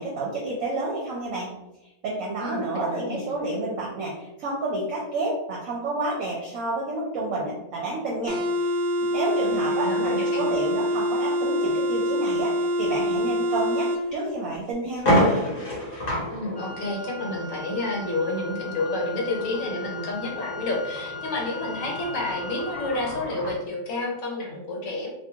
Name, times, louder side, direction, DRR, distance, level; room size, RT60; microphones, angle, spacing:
voice 1, 0.0-1.5 1.8-8.7 9.1-15.3, right 2 dB, 70° right, -3 dB, 0.9 m, -30 dB
voice 2, 2.4-3.3 9.5-10.4 16.3-25.1, left 2 dB, 65° left, -2 dB, 1.1 m, -30 dB
sound 1, 8.3-14.0, equal, 90° right, 0.5 m, -25 dB
sound 2, 14.0-14.1 14.5-14.6 14.9-23.6, equal, 45° left, 0.8 m, -30 dB
Wind instrument woodwind instrument, 16.5-23.2, left 3 dB, 5° right, 0.6 m, -39 dB
2.5 x 2.1 x 2.7 m, 0.93 s
omnidirectional pair, 1.6 m